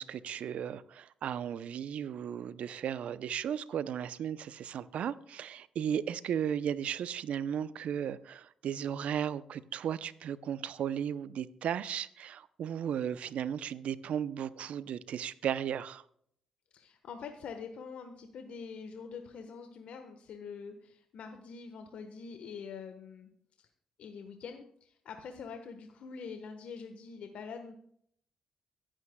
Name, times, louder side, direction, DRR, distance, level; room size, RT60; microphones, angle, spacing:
voice 1, 0.0-16.0, right 9 dB, 65° right, 0.6 m, -35 dB
voice 2, 16.7-23.3 23.6-23.7 24.0-27.7, left 5 dB, 70° left, 1.3 m, -45 dB
24.5 x 8.9 x 2.3 m
hypercardioid pair, 45°, 2 cm